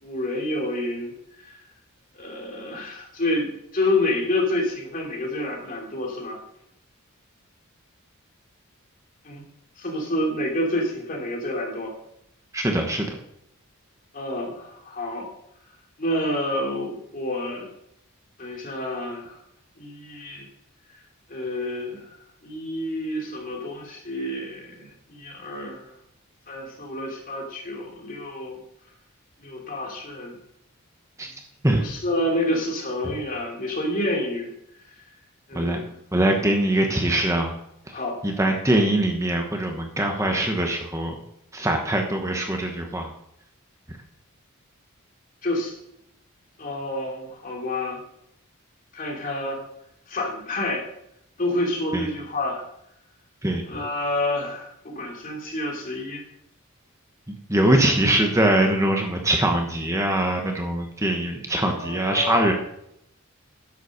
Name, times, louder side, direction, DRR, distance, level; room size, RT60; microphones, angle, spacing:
voice 1, 0.0-1.1 1.4-1.6 2.1-6.4 9.2-9.4 9.8-11.9 14.1-15.3 16.0-17.6 18.4-19.4 19.8-20.5 21.3-25.8 26.5-28.6 29.4-30.3 31.8-34.5 35.5-35.9 37.9-38.2 45.4-45.8 46.6-48.0 48.9-49.6 50.1-50.8 51.4-52.7 53.7-56.2 57.7-57.9 61.6-62.5, left 1 dB, 40° left, -1 dB, 3.2 m, -28 dB
voice 2, 12.5-13.1 31.2-31.3 31.6-31.8 35.5-35.8 36.1-37.5 38.2-41.1 41.5-43.1 51.9-52.1 53.4-53.6 57.5-62.5, right 1 dB, 15° right, 2 dB, 1.2 m, -22 dB
10.5 x 7.3 x 6.6 m, 0.77 s
head